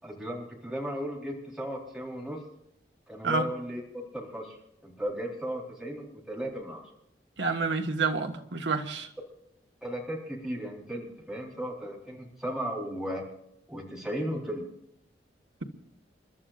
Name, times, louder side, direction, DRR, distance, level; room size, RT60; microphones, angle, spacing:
voice 1, 0.0-2.4 3.1-4.6 4.8-6.8 9.8-13.2 13.7-14.7, equal, 5° right, -3 dB, 4.1 m, -35 dB
voice 2, 7.4-9.1, right 4 dB, 80° right, 4 dB, 1.7 m, -28 dB
29.5 x 12.5 x 2.6 m, 0.79 s
head